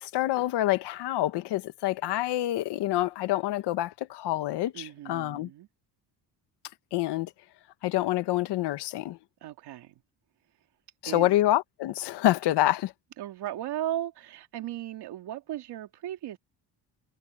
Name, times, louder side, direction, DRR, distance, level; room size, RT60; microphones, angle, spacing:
voice 1, 0.0-5.5 6.9-7.3 7.8-9.2 11.0-12.9, left 15 dB, 80° left, 1.5 m, -27 dB
voice 2, 4.7-5.7 9.4-10.0 11.0-11.4 13.2-16.4, right 12 dB, 75° right, 2.9 m, -36 dB
cardioid pair, 115°, 40 cm